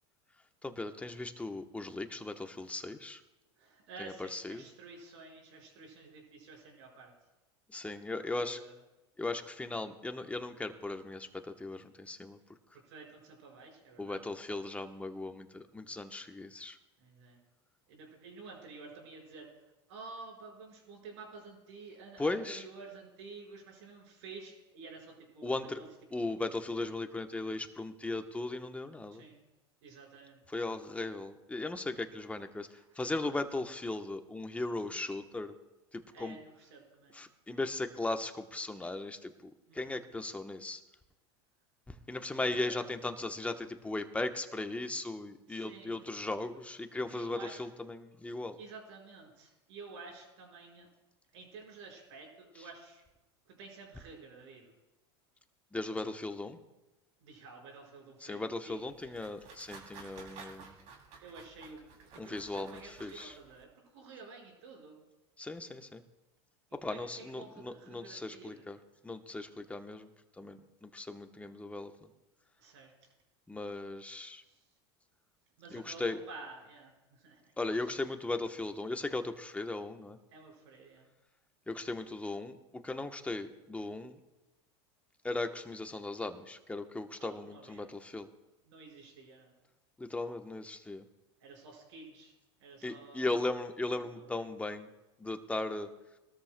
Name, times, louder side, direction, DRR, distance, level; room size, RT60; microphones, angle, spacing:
voice 1, 0.6-3.2 4.0-4.6 7.7-8.6 9.2-12.4 14.0-16.8 22.2-22.6 25.4-25.8 26.1-29.2 30.5-32.7 33.0-35.5 35.9-36.4 37.1-40.8 41.9-48.6 55.7-56.6 58.2-60.8 62.2-63.4 65.4-66.0 66.7-68.8 69.0-70.1 70.4-72.1 73.5-74.4 75.7-76.2 77.6-80.2 81.7-82.6 82.8-84.2 85.2-88.3 90.0-91.0 92.8-94.9 95.2-95.9, left 2 dB, 10° left, 7 dB, 1.0 m, -37 dB
voice 2, 3.6-7.1 8.4-8.7 12.7-14.2 17.0-17.4 17.9-19.5 19.9-25.9 26.2-26.3 29.1-29.4 29.8-30.4 32.7-32.8 36.1-37.2 39.7-40.0 42.5-42.9 45.5-46.0 47.1-47.6 48.6-50.9 51.3-53.0 53.5-54.7 57.2-59.2 61.2-65.0 66.8-68.7 72.6-73.1 74.1-74.6 75.6-77.4 77.8-78.0 80.3-81.1 87.2-87.8 88.7-89.5 91.4-92.3 92.6-93.4 93.9-94.3, right 4 dB, 75° right, 0 dB, 5.1 m, -51 dB
sound 1, 58.7-63.6, right 5 dB, 55° right, 3.0 m, -53 dB
21.5 x 13.0 x 2.2 m, 1.0 s
hypercardioid pair, 105°, 15 cm